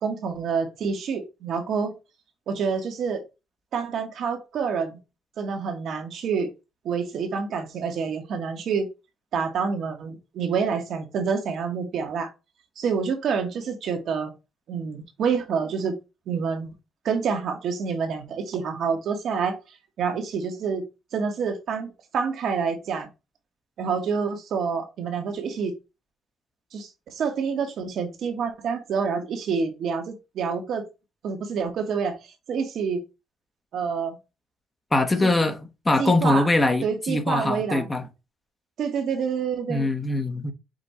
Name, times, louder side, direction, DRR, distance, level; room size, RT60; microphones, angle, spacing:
voice 1, 0.0-2.0 2.5-3.2 3.7-5.0 5.4-6.5 6.8-8.9 9.3-12.3 12.8-14.3 14.7-15.9 16.3-16.7 17.0-19.6 20.0-20.8 21.1-23.1 23.8-25.7 26.7-30.9 31.2-32.1 32.5-33.0 33.7-34.2 35.2-35.3 36.0-36.5 36.8-37.9 38.8-39.9, right 6 dB, 70° right, 1.1 m, -27 dB
voice 2, 34.9-35.6 35.8-38.0 39.7-40.5, left 2 dB, 20° left, 0.8 m, -22 dB
5.1 x 2.3 x 4.1 m
cardioid pair, 90°, 0 cm